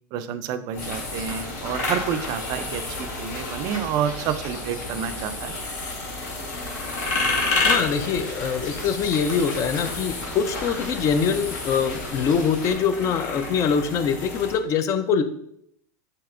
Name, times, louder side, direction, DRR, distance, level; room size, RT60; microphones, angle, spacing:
voice 1, 0.1-5.5, right 8 dB, 45° right, 10 dB, 0.4 m, -29 dB
sound 1, 0.7-14.5, left 2 dB, 70° left, 1.6 m, -31 dB
sound 2, 0.8-12.7, left 2 dB, 85° left, 1.4 m, -36 dB
voice 2, 7.7-15.2, left 6 dB, 35° left, 10 dB, 0.5 m, -24 dB
7.0 x 2.9 x 2.5 m, 0.72 s
supercardioid pair, 125°, 9 cm